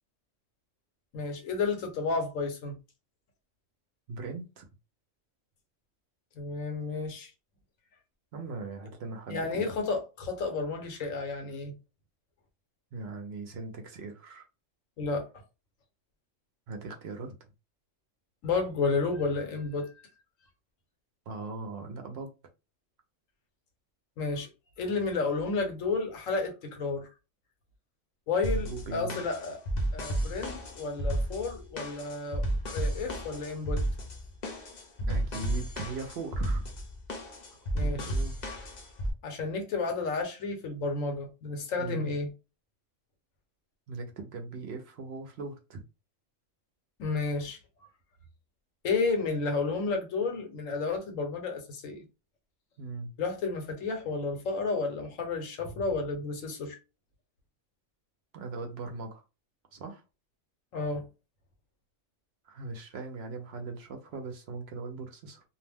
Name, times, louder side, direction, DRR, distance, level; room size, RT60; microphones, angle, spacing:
voice 1, 1.1-2.8 6.3-7.3 9.3-11.7 15.0-15.3 18.4-19.9 24.2-24.5 24.8-27.1 28.3-29.6 29.9-32.4 32.7-33.8 37.7-38.1 39.2-42.3 47.0-47.6 48.8-52.0 53.2-56.8 60.7-61.0, left 4 dB, 85° left, 1.2 m, -31 dB
voice 2, 4.1-4.7 8.3-9.7 12.9-14.4 16.7-17.3 21.3-22.3 28.5-29.2 35.0-36.6 37.8-38.4 41.8-42.1 43.9-45.8 52.8-53.1 58.3-59.2 59.7-60.0 62.5-65.4, right 3 dB, 65° right, 0.7 m, -39 dB
sound 1, 28.4-39.1, right 1 dB, 45° left, 0.6 m, -32 dB
2.6 x 2.1 x 3.3 m
omnidirectional pair, 1.3 m